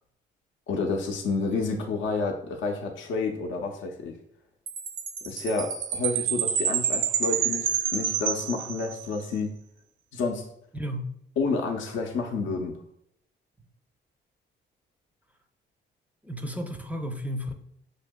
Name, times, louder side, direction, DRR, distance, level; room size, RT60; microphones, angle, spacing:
voice 1, 0.7-4.2 5.2-9.5 10.1-10.4 11.4-12.7, left 4 dB, 75° left, 3 dB, 0.6 m, -29 dB
Chime, 4.7-9.2, right 8 dB, 80° right, 0.4 m, -28 dB
voice 2, 10.7-11.1 16.2-17.5, equal, 5° right, 4 dB, 0.4 m, -33 dB
6.1 x 2.7 x 2.2 m, 0.74 s
cardioid pair, 90°, 20 cm